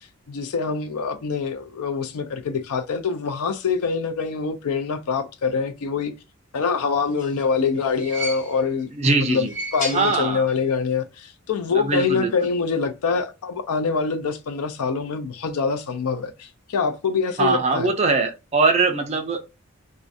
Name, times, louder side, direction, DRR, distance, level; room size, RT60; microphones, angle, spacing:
voice 1, 0.3-6.1 6.5-17.9, left 5 dB, 80° left, 0.4 m, -25 dB
sound 1, 6.9-8.8 9.3-10.7 11.0-11.1 12.2-12.3, equal, 35° left, 0.7 m, -34 dB
voice 2, 9.0-9.5 9.9-10.5 11.7-12.3 17.4-19.4, right 3 dB, 30° right, 0.3 m, -21 dB
2.4 x 2.1 x 2.5 m
head